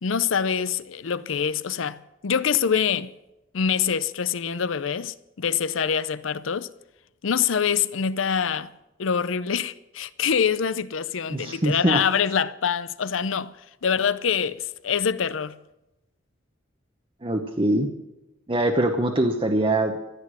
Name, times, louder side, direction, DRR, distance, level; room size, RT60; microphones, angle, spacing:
voice 1, 0.0-3.1 3.5-6.7 7.2-8.7 9.0-13.5 13.8-15.6, left 7 dB, 75° left, 0.6 m, -25 dB
voice 2, 11.3-12.0 17.2-17.9 18.5-20.1, right 1 dB, 25° right, 0.9 m, -23 dB
15.0 x 8.2 x 9.8 m
head